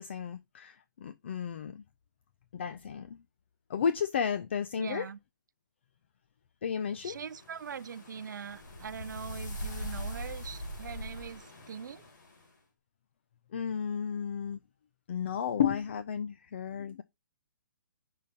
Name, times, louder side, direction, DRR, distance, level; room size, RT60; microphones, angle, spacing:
voice 1, 0.0-1.8 2.5-3.2 3.7-5.1 6.6-7.2 13.5-14.6 15.1-17.0, left 7 dB, 35° left, 0.4 m, -33 dB
voice 2, 4.8-5.2 7.0-12.0, right 7 dB, 70° right, 0.5 m, -42 dB
sound 1, 7.1-12.4, left 1 dB, 70° left, 2.5 m, -42 dB
5.6 x 4.0 x 4.9 m
hypercardioid pair, 170°, 10 cm